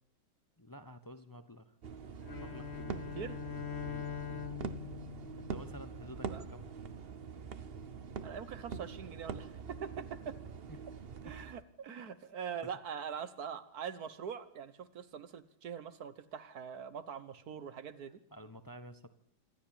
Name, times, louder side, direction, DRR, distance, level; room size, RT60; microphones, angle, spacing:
voice 1, 0.6-1.7 2.4-3.0 3.8-4.5 5.5-6.7 10.7-10.8 11.2-11.3 12.6-12.8 18.3-19.1, left 1 dB, 20° left, 10 dB, 0.6 m, -50 dB
sound 1, 1.8-11.6, right 6 dB, 40° right, 0.9 m, -44 dB
Bowed string instrument, 2.2-6.4, left 8 dB, 40° left, 1.4 m, -43 dB
voice 2, 8.2-10.3 11.2-18.2, right 7 dB, 60° right, 13 dB, 1.6 m, -43 dB
26.0 x 13.0 x 8.8 m, 0.71 s
omnidirectional pair, 1.9 m